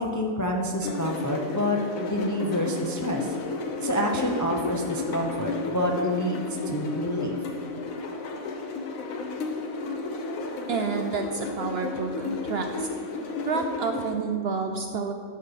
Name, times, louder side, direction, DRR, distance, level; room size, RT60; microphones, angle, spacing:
voice 1, 0.0-3.3 3.8-7.4, equal, 25° left, 1 dB, 0.4 m, -28 dB
sound 1, 0.8-14.1, left 3 dB, 80° left, 1.3 m, -32 dB
voice 2, 10.7-12.9 13.5-15.1, right 5 dB, 65° right, 5 dB, 0.6 m, -29 dB
12.0 x 4.3 x 5.2 m, 2.1 s
omnidirectional pair, 1.4 m